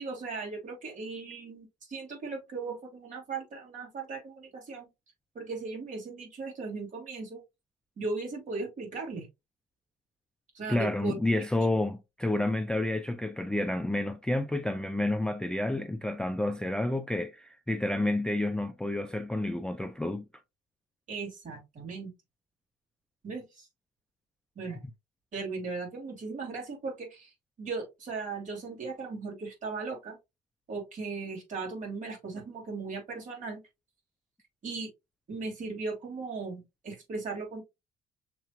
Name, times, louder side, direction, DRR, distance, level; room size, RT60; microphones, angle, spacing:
voice 1, 0.0-4.9 5.3-7.4 8.0-9.3 10.5-11.1 21.1-22.1 23.2-23.7 24.6-24.8 25.3-27.3 27.6-30.2 30.7-33.6 34.6-34.9 35.3-37.6, right 4 dB, 50° right, 2.8 m, -37 dB
voice 2, 10.7-20.2, left 1 dB, 5° left, 0.3 m, -30 dB
6.6 x 3.0 x 2.3 m
cardioid pair, 110°, 17 cm